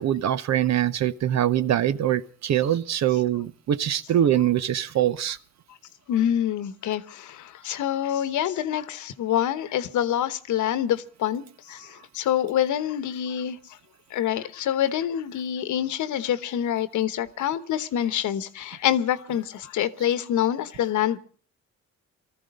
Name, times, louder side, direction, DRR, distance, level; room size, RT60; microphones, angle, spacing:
voice 1, 0.0-5.4, right 11 dB, 60° right, 0.9 m, -23 dB
voice 2, 6.1-13.8 14.1-21.2, left 10 dB, 75° left, 1.1 m, -26 dB
19.0 x 14.0 x 5.3 m
cardioid pair, 90°, 30 cm